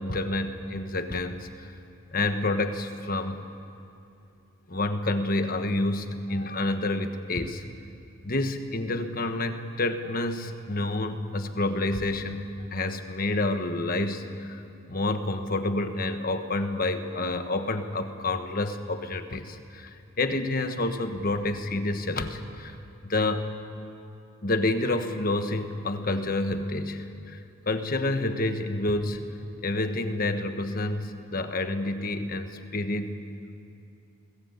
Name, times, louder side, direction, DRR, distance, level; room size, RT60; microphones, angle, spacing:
voice 1, 0.0-1.7 2.1-3.4 4.7-7.6 8.2-14.6 14.9-22.7 23.0-23.5 24.4-27.4 27.7-29.2 29.6-33.2, left 2 dB, 45° left, 8 dB, 1.3 m, -29 dB
27.0 x 20.0 x 8.3 m, 2.7 s
head